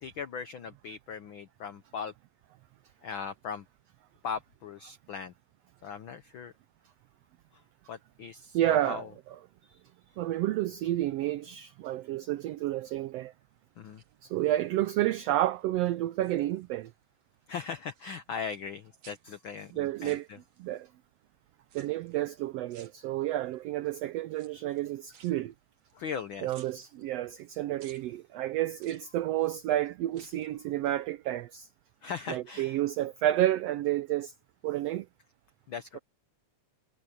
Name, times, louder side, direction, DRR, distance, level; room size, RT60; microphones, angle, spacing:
voice 1, 0.0-2.1 3.0-3.6 4.2-5.3 5.8-6.5 7.5-7.6 7.9-9.2 13.8-14.0 17.5-20.4 25.9-26.5 32.0-32.8 35.7-36.0, left 6 dB, 85° left, 1.1 m, -39 dB
voice 2, 8.5-9.0 9.7-9.8 10.2-13.3 14.2-16.9 19.8-20.3 20.6-20.9 21.7-25.5 26.4-31.7 32.3-34.3 34.6-35.1, right 14 dB, 85° right, 1.4 m, -30 dB
sound 1, 13.8-14.7 15.2-15.6 15.9-17.0 17.2-18.8 19.0-20.8 21.7-22.3 22.7-23.6 24.3-26.2 26.5-27.5 27.8-28.1 28.8-29.6 30.0-30.6 30.9-31.0, right 7 dB, 60° right, 3.1 m, -58 dB
omnidirectional pair, 3.5 m